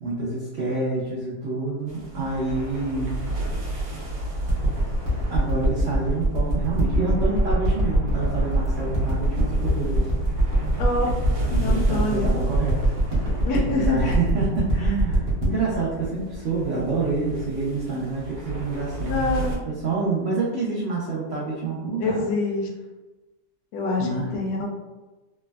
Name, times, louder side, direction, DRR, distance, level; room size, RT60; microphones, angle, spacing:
voice 1, 0.0-3.2 5.3-10.1 11.5-12.9 13.7-22.2 24.0-24.3, right 3 dB, 90° right, -6 dB, 0.5 m, -27 dB
sound 1, 1.9-19.6, right 1 dB, 65° right, 1.0 m, -32 dB
sound 2, 4.5-17.2 17.8-17.9, right 1 dB, 40° right, 0.7 m, -23 dB
voice 2, 10.8-11.1 11.6-12.3 13.4-14.1 19.1-19.7 22.0-22.7 23.7-24.7, left 2 dB, 70° left, 0 dB, 1.0 m, -26 dB
3.3 x 2.0 x 2.2 m, 1.1 s
omnidirectional pair, 1.8 m